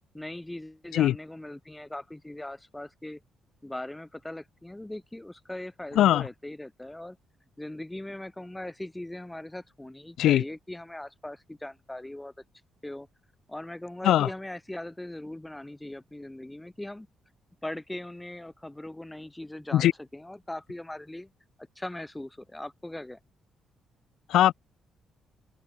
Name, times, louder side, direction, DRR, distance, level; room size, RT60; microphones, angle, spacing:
voice 1, 0.1-3.2 3.6-7.2 7.6-12.3 12.8-13.1 13.5-17.1 17.6-21.3 21.6-23.2, left 1 dB, 10° left, 2.0 m, -40 dB
voice 2, 6.0-6.3 10.2-10.4 14.0-14.3 19.7-19.9 24.3-24.5, left 12 dB, 80° left, 0.3 m, -20 dB
open air
cardioid pair, 90°, 0 cm